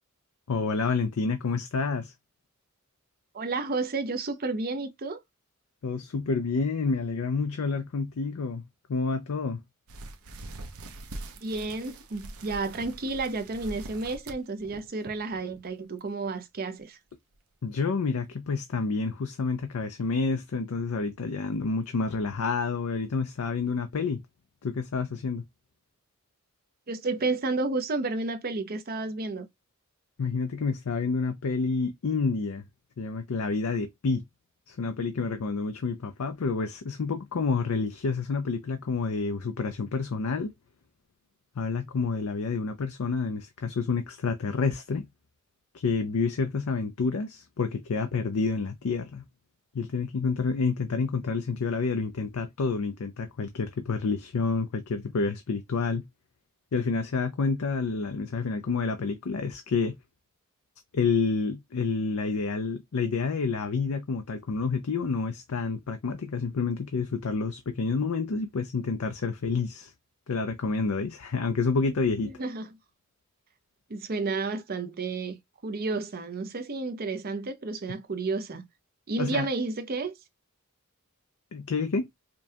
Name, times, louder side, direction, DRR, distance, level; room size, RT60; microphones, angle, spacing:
voice 1, 0.5-2.1 5.8-8.6 8.9-9.6 17.6-24.2 24.6-25.4 30.2-32.6 33.0-34.2 34.7-40.5 41.6-45.1 45.7-49.3 49.7-56.0 56.7-60.0 60.9-69.9 70.3-72.3 79.2-79.5 81.5-82.1, left 4 dB, 75° left, 0.5 m, -29 dB
voice 2, 3.3-5.2 11.4-17.0 26.9-29.5 72.2-72.7 73.9-78.7 79.1-80.1, right 3 dB, 45° right, 0.6 m, -31 dB
sound 1, 9.9-15.6 16.0-16.2 16.8-16.9 17.3-17.4, right 2 dB, 75° right, 0.8 m, -43 dB
5.2 x 2.2 x 2.7 m
head